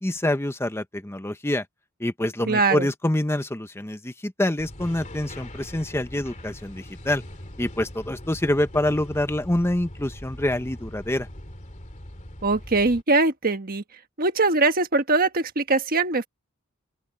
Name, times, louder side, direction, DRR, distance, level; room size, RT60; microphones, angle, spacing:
voice 1, 0.0-1.6 2.0-7.2 7.6-11.3, left 1 dB, 10° left, 0.8 m, -26 dB
voice 2, 2.5-2.9 12.4-13.8 14.2-16.3, right 3 dB, 40° right, 1.4 m, -22 dB
sound 1, 4.6-13.0, left 1 dB, 35° left, 2.9 m, -41 dB
open air
head